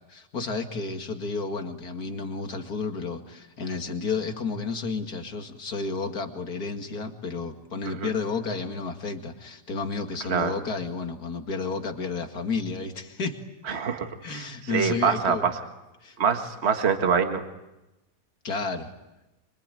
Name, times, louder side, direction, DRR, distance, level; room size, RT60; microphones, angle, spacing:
voice 1, 0.1-13.4 14.2-15.4 16.0-16.2 18.4-18.9, left 4 dB, 55° left, 5 dB, 2.6 m, -31 dB
voice 2, 13.7-15.5 16.2-17.4, right 6 dB, 35° right, 6 dB, 1.8 m, -25 dB
25.5 x 25.0 x 9.1 m, 1.0 s
omnidirectional pair, 2.0 m